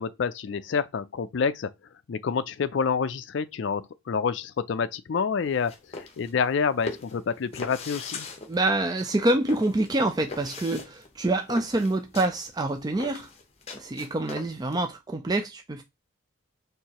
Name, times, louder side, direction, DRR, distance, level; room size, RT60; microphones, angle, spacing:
voice 1, 0.0-1.7 2.1-8.3, left 6 dB, 60° left, 0.4 m, -28 dB
sound 1, 5.5-14.8, left 3 dB, 30° left, 0.8 m, -41 dB
voice 2, 8.5-13.3 13.7-15.8, right 2 dB, 20° right, 0.3 m, -26 dB
4.7 x 3.2 x 2.9 m
head